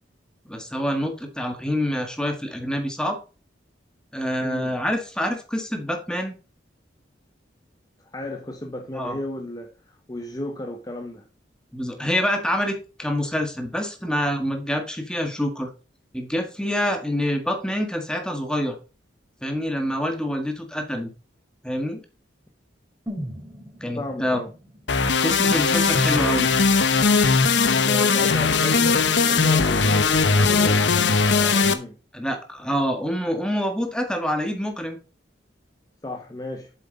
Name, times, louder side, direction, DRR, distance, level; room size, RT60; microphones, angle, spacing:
voice 1, 0.4-3.2 4.1-6.3 8.9-9.1 11.7-15.7 16.1-18.8 19.4-21.1 21.6-22.0 23.8-24.4 25.2-26.5 32.1-35.0, equal, 5° left, 4 dB, 1.7 m, -26 dB
voice 2, 4.4-4.7 8.0-11.3 23.9-24.5 27.9-32.0 36.0-36.7, left 1 dB, 20° left, 4 dB, 0.9 m, -34 dB
sound 1, 23.1-27.0 27.3-27.4, equal, 10° right, 3.3 m, -40 dB
sound 2, 24.9-31.7, left 4 dB, 70° left, 0.9 m, -19 dB
7.9 x 7.3 x 3.9 m, 0.33 s
head